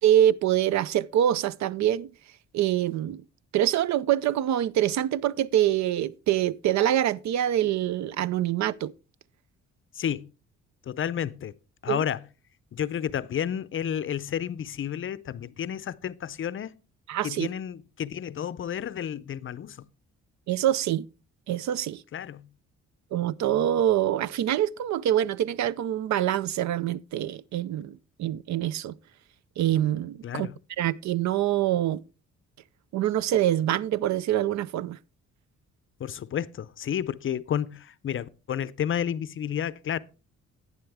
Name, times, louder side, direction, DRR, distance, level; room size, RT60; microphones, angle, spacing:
voice 1, 0.0-2.1 2.5-3.2 3.5-8.9 11.9-12.0 17.1-17.5 20.5-21.1 21.5-22.0 23.1-29.0 29.6-30.5 30.8-32.0 32.9-35.0, right 12 dB, 65° right, 0.5 m, -25 dB
voice 2, 10.0-10.3 10.9-11.5 11.8-12.2 12.7-16.7 17.2-19.9 22.1-22.5 30.2-30.6 36.0-40.0, left 9 dB, 45° left, 0.5 m, -31 dB
11.0 x 9.4 x 3.5 m
cardioid pair, 90°, 30 cm